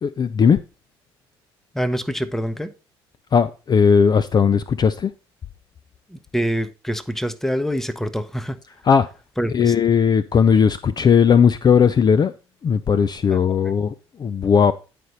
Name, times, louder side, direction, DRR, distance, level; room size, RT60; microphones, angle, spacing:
voice 1, 0.0-0.6 3.3-5.1 8.8-9.1 9.5-12.3 12.6-14.7, left 6 dB, 30° left, 0.4 m, -17 dB
voice 2, 1.7-2.7 6.1-8.6 9.4-9.7 13.3-13.4 13.7-13.8, equal, 5° left, 0.8 m, -25 dB
9.3 x 5.1 x 4.1 m
hypercardioid pair, 55°, 13 cm